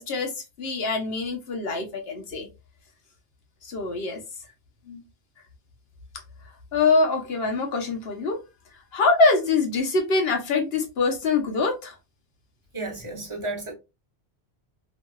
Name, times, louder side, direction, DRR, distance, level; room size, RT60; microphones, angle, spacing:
voice 1, 0.0-2.5 3.6-4.2 4.9-5.0 6.7-8.4 8.9-11.9, left 3 dB, 65° left, 1.0 m, -24 dB
voice 2, 12.7-13.7, right 2 dB, 30° right, 0.8 m, -32 dB
3.0 x 2.6 x 2.2 m
omnidirectional pair, 1.1 m